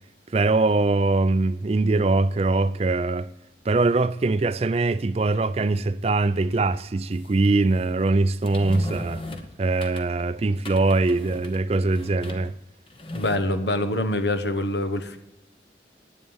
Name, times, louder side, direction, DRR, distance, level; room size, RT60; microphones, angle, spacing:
voice 1, 0.3-3.3 3.7-9.2 9.6-12.6, right 3 dB, 35° right, 0.4 m, -22 dB
sound 1, 7.3-7.5 8.5-10.2 10.6-12.6 12.9-13.4, left 1 dB, 30° left, 1.0 m, -37 dB
voice 2, 13.1-15.2, left 1 dB, 75° left, 1.2 m, -25 dB
11.0 x 9.2 x 7.1 m
head